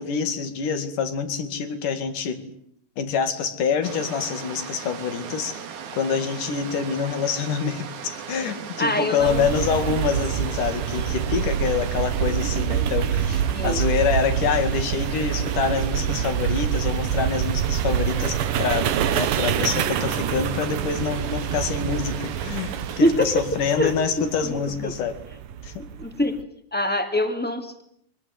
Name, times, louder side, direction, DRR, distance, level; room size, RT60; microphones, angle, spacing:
voice 1, 0.0-2.5 3.0-5.6 6.0-25.2 25.6-25.8, left 6 dB, 70° left, 9 dB, 3.8 m, -26 dB
sound 1, 3.8-23.0, right 7 dB, 65° right, 3.2 m, -39 dB
voice 2, 8.8-9.5 13.5-13.8 23.0-23.5 23.8-24.5 24.8-24.9 25.8-26.4 26.7-27.8, left 1 dB, 5° left, 6 dB, 2.2 m, -24 dB
sound 2, 9.2-26.4, right 9 dB, 80° right, 2.9 m, -26 dB
24.5 x 20.5 x 9.5 m, 0.69 s
omnidirectional pair, 3.8 m